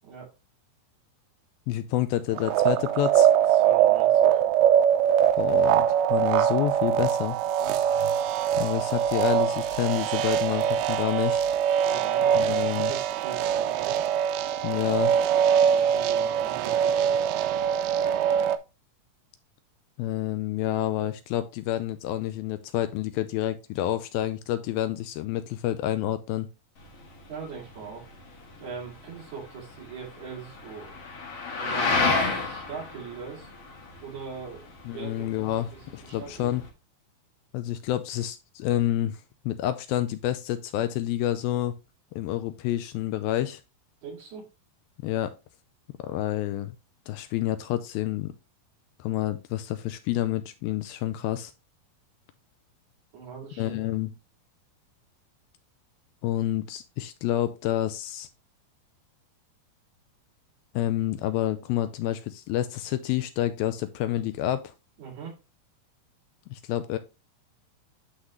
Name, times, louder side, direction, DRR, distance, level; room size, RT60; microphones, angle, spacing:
voice 1, 1.7-3.3 5.4-7.4 8.6-11.4 12.4-12.9 14.6-15.1 20.0-26.5 34.9-36.6 37.5-39.2 39.5-41.7 42.2-43.6 45.0-45.3 46.0-46.7 47.1-48.3 49.0-51.5 53.6-54.1 56.2-58.3 60.7-64.7 66.5-67.0, left 13 dB, 80° left, 11 dB, 2.3 m, -28 dB
sound 1, 2.3-18.6, right 9 dB, 80° right, 2.4 m, -23 dB
voice 2, 3.5-4.4 7.6-7.9 11.8-14.0 15.6-17.2 27.3-28.1 28.6-31.0 31.6-33.5 34.0-34.7 34.9-35.6 36.0-36.6 44.0-44.5 53.1-53.8 65.0-65.4, right 6 dB, 50° right, -2 dB, 3.6 m, -41 dB
sound 2, 26.8-36.7, left 3 dB, 50° left, 2.1 m, -32 dB
11.5 x 4.0 x 3.1 m, 0.27 s
omnidirectional pair, 4.4 m